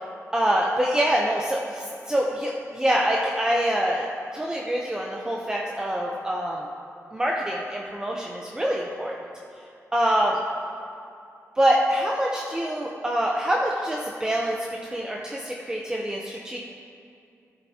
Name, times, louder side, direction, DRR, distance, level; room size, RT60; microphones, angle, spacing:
voice 1, 0.3-4.1 4.3-6.7 7.1-9.1 9.9-10.4 11.6-16.6, right 1 dB, 15° right, -2 dB, 0.7 m, -25 dB
13.5 x 8.8 x 2.8 m, 2.5 s
wide cardioid pair, 130°, 5 cm